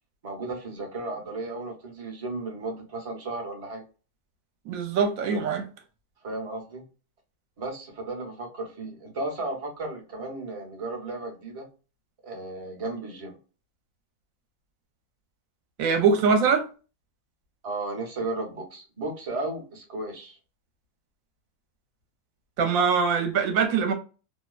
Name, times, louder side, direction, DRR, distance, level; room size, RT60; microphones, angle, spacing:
voice 1, 0.2-3.8 6.2-6.8 7.6-11.7 12.2-13.4 16.1-16.3 17.6-20.4, right 2 dB, 30° right, 0.6 m, -34 dB
voice 2, 4.7-5.6 15.8-16.7 22.6-23.9, right 5 dB, 65° right, 1.0 m, -23 dB
2.7 x 2.1 x 2.3 m
omnidirectional pair, 1.7 m